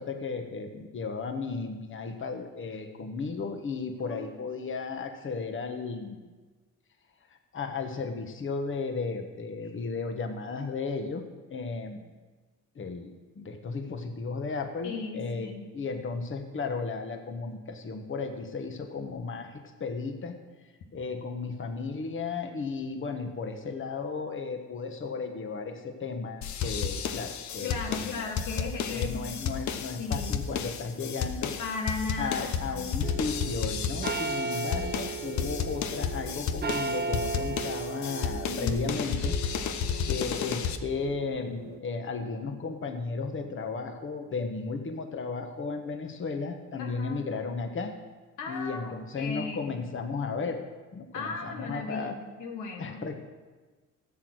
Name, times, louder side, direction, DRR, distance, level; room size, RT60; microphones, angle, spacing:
voice 1, 0.0-6.3 7.5-11.2 11.5-12.1 12.7-15.5 15.7-20.4 20.9-28.2 28.5-31.5 32.2-39.3 39.7-47.9 48.5-50.6 50.9-52.2 52.8-53.2, left 4 dB, 40° left, 5 dB, 1.3 m, -34 dB
voice 2, 4.0-4.3 14.8-15.7 27.6-29.4 30.0-30.3 31.6-33.2 38.5-38.9 46.8-47.3 48.4-49.8 51.1-53.0, left 4 dB, 90° left, 2 dB, 1.8 m, -36 dB
sound 1, 26.4-40.8, left 7 dB, 70° left, 0.9 m, -32 dB
sound 2, 33.0-41.8, right 4 dB, 35° right, 0.8 m, -36 dB
13.5 x 8.0 x 6.3 m, 1.3 s
cardioid pair, 90°, 30 cm